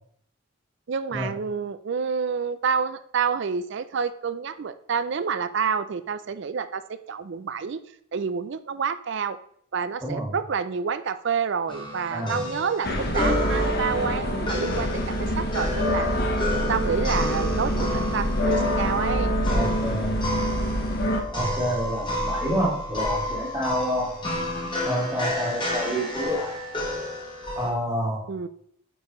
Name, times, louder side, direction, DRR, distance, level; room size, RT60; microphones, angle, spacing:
voice 1, 0.9-7.8 8.1-9.4 9.7-14.9 15.2-16.1 16.7-19.3 28.3-28.5, right 6 dB, 55° right, 12 dB, 0.4 m, -28 dB
voice 2, 10.0-10.3 12.1-12.5 19.5-20.1 21.3-24.1 24.8-26.5 27.6-28.2, equal, 15° right, -3 dB, 1.8 m, -28 dB
sound 1, 11.7-27.7, left 1 dB, 20° left, 1.2 m, -31 dB
sound 2, 12.8-21.2, equal, 45° left, 1.1 m, -25 dB
9.0 x 5.4 x 3.1 m, 0.66 s
head